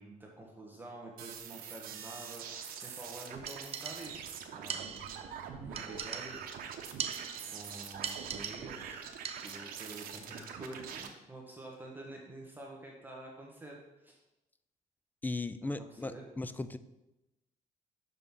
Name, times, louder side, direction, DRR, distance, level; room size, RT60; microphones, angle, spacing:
voice 1, 0.0-5.1 5.6-6.4 6.7-6.8 7.5-9.1 9.4-14.2 15.6-16.3, right 2 dB, 15° right, -2 dB, 1.2 m, -48 dB
sound 1, 1.2-11.1, right 7 dB, 90° right, 0.9 m, -44 dB
sound 2, 3.5-4.3 4.7-5.3 5.7-6.6 7.0-7.6 8.0-8.9 9.2-9.7, right 7 dB, 40° right, 0.5 m, -41 dB
sound 3, 9.3-11.3, left 3 dB, 60° left, 1.2 m, -65 dB
voice 2, 15.2-16.8, left 2 dB, 10° left, 13 dB, 0.4 m, -37 dB
6.2 x 5.5 x 5.5 m, 0.97 s
cardioid pair, 120°, 15 cm